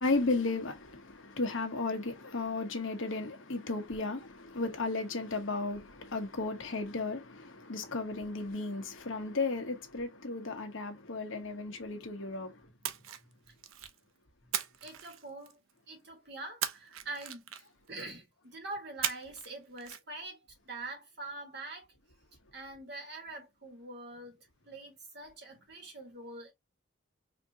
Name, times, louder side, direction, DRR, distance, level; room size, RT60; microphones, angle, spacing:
voice 1, 0.0-12.6, left 3 dB, 70° left, 1.1 m, -34 dB
Splash splatter, 12.8-14.0 14.5-15.7 16.6-17.9 19.0-19.5 19.8-20.0, right 10 dB, 80° right, 0.5 m, -37 dB
voice 2, 14.8-15.6 15.9-17.5 17.9-20.4 20.6-21.9 22.5-26.5, right 2 dB, 55° right, 1.6 m, -44 dB
4.3 x 2.7 x 2.8 m
head